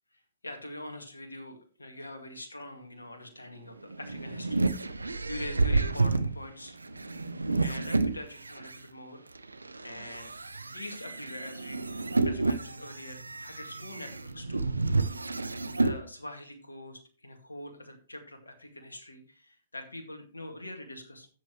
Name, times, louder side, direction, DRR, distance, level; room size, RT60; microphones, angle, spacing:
voice 1, 0.1-6.8 7.6-9.3 9.8-10.3 10.7-11.9 12.2-14.7 15.7-21.3, left 1 dB, 85° left, 4 dB, 2.1 m, -44 dB
sound 1, 3.7-8.8 9.4-16.0, right 3 dB, 85° right, 0.7 m, -30 dB
12.5 x 8.1 x 3.1 m, 0.39 s
figure-of-eight pair, 115°, 0 cm